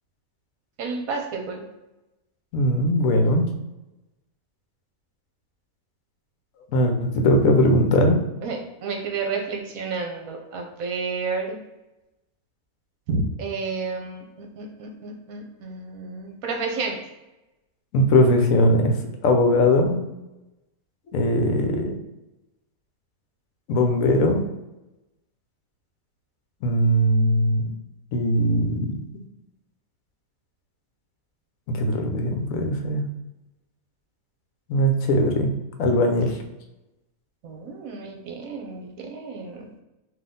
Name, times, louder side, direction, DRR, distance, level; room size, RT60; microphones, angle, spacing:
voice 1, 0.8-1.6 8.4-11.6 13.1-17.0 37.4-39.7, right 4 dB, 65° right, 2 dB, 1.1 m, -31 dB
voice 2, 2.5-3.5 6.7-8.2 17.9-19.0 19.2-20.0 21.1-21.9 23.7-24.4 26.6-27.6 28.1-29.0 31.7-33.1 34.7-35.5 35.8-36.4, left 1 dB, 65° left, 5 dB, 1.0 m, -20 dB
3.9 x 2.8 x 3.7 m, 0.99 s
omnidirectional pair, 1.7 m